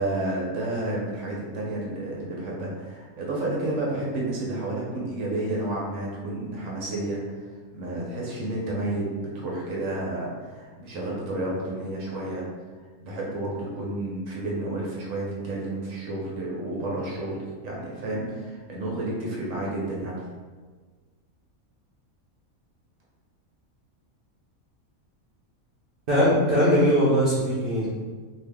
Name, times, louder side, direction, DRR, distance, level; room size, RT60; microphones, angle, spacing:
voice 1, 0.0-7.5 7.7-9.1 9.3-12.4 13.0-20.2, right 2 dB, 70° right, -4 dB, 1.1 m, -31 dB
voice 2, 26.1-27.9, equal, 55° right, -8 dB, 0.7 m, -20 dB
2.7 x 2.4 x 3.3 m, 1.4 s
omnidirectional pair, 1.5 m